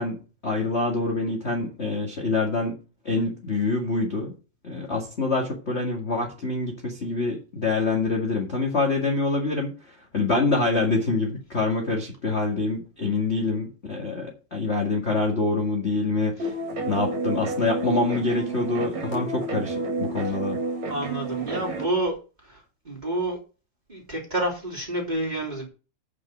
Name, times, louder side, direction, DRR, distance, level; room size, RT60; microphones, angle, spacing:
voice 1, 0.0-2.8 3.0-4.3 4.6-16.5 16.9-20.6, left 3 dB, 25° left, 0 dB, 1.7 m, -26 dB
sound 1, 16.4-21.9, right 2 dB, 65° right, 3.2 m, -30 dB
voice 2, 20.9-22.2 22.5-22.6 22.8-23.4 23.9-25.7, right 1 dB, 15° right, -1 dB, 3.3 m, -28 dB
9.0 x 6.7 x 6.2 m, 0.34 s
omnidirectional pair, 3.3 m